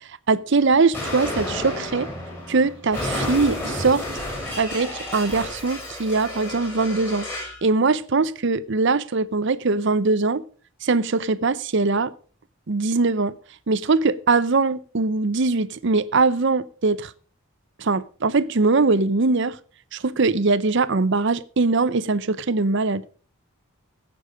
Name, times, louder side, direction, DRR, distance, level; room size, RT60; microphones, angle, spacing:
voice 1, 0.3-2.1 2.5-4.0 4.6-7.3 7.6-10.4 10.8-12.1 12.7-13.3 13.7-17.1 17.8-19.6 19.9-23.0, right 3 dB, 55° right, 0.6 m, -21 dB
Explosion, 0.9-7.6, left 1 dB, 10° left, 6.3 m, -31 dB
16.5 x 7.0 x 5.0 m
head